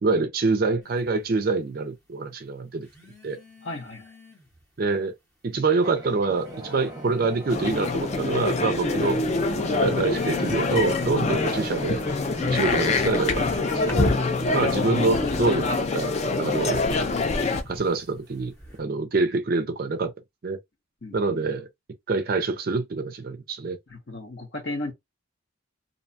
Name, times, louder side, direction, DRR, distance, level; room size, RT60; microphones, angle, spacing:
voice 1, 0.0-2.9 3.2-3.4 4.8-5.1 5.4-9.2 9.8-12.0 12.5-13.4 13.9-14.2 14.5-16.8 17.7-18.5 18.8-20.1 20.4-20.6 21.1-21.7 22.1-23.8, right 3 dB, 45° right, 0.4 m, -26 dB
sound 1, 0.8-1.1 2.8-4.6 5.6-5.7 6.4-8.1 8.6-9.1 9.9-15.9 16.7-18.8, left 1 dB, 15° left, 0.7 m, -37 dB
voice 2, 3.6-4.1 12.4-12.9 21.0-21.4 23.9-24.9, left 2 dB, 60° left, 0.8 m, -35 dB
sound 2, 5.8-15.9, right 1 dB, 20° right, 0.9 m, -39 dB
sound 3, 7.5-17.6, left 3 dB, 35° left, 0.3 m, -25 dB
2.6 x 2.2 x 2.6 m
head